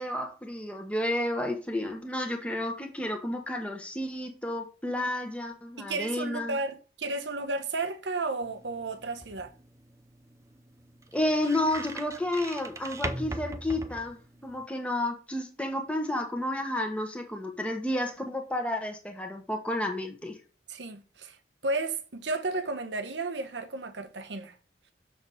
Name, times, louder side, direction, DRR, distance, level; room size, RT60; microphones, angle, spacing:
voice 1, 0.0-6.6 11.1-20.4, left 1 dB, 5° left, 1.1 m, -31 dB
voice 2, 5.8-9.5 20.7-21.4 21.6-24.5, right 3 dB, 85° right, 1.0 m, -33 dB
sound 1, 8.4-14.7, right 2 dB, 15° right, 0.5 m, -41 dB
6.9 x 6.0 x 4.1 m
head